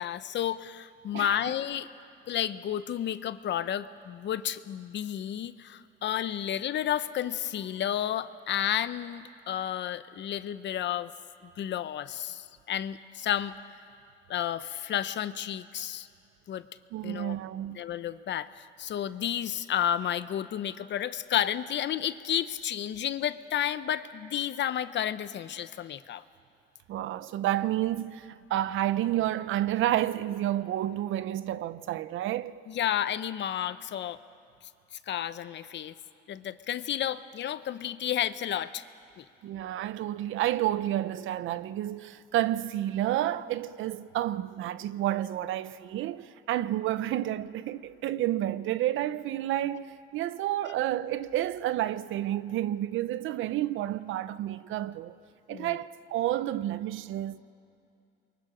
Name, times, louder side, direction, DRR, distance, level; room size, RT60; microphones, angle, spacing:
voice 1, 0.0-1.9 2.3-11.1 11.4-13.5 14.3-16.1 16.5-16.7 17.0-17.4 17.7-26.2 32.7-34.2 35.1-36.0 36.3-38.8 39.2-39.3 55.5-55.8, left 10 dB, 65° left, 0.8 m, -31 dB
voice 2, 16.9-17.8 26.9-32.5 39.4-55.1 55.5-57.4, right 13 dB, 85° right, 0.7 m, -30 dB
28.5 x 23.0 x 5.1 m
cardioid pair, 90°, 20 cm